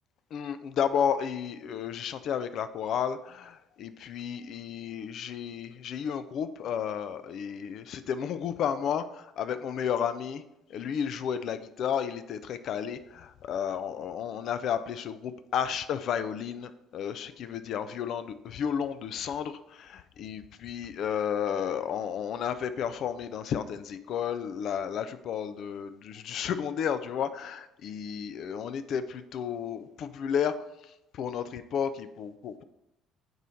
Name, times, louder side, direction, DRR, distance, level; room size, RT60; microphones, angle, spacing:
voice 1, 0.3-10.4 10.7-30.5 31.1-32.6, left 8 dB, 55° left, 12 dB, 0.4 m, -32 dB
9.0 x 3.1 x 4.0 m, 0.86 s
figure-of-eight pair, 50°, 0 cm